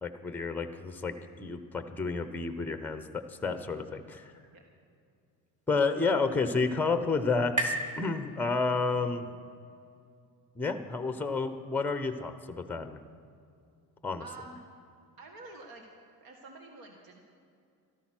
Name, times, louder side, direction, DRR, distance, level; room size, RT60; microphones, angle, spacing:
voice 1, 0.0-4.3 5.7-9.3 10.6-13.0 14.0-14.2, left 4 dB, 5° left, 9 dB, 0.8 m, -30 dB
sound 1, 5.2-9.0, right 2 dB, 20° right, 2.3 m, -38 dB
voice 2, 14.2-14.6 15.2-15.9 16.2-17.2, right 3 dB, 65° right, 2 dB, 1.9 m, -48 dB
13.5 x 13.0 x 6.1 m, 2.4 s
cardioid pair, 105°, 38 cm